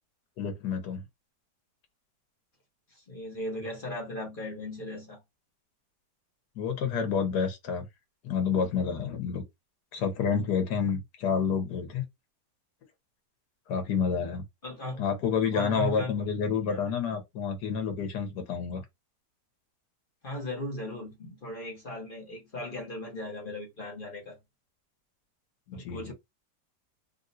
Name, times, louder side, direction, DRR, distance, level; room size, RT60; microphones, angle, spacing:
voice 1, 0.4-1.0 6.6-7.9 8.2-9.4 9.9-12.0 13.7-14.4 15.0-18.8 25.7-26.1, left 6 dB, 75° left, 1.6 m, -29 dB
voice 2, 2.9-5.2 14.6-15.0 15.5-16.2 16.7-16.8 20.2-24.4 25.7-26.1, left 1 dB, 35° left, 1.1 m, -37 dB
3.6 x 2.6 x 2.6 m
omnidirectional pair, 1.8 m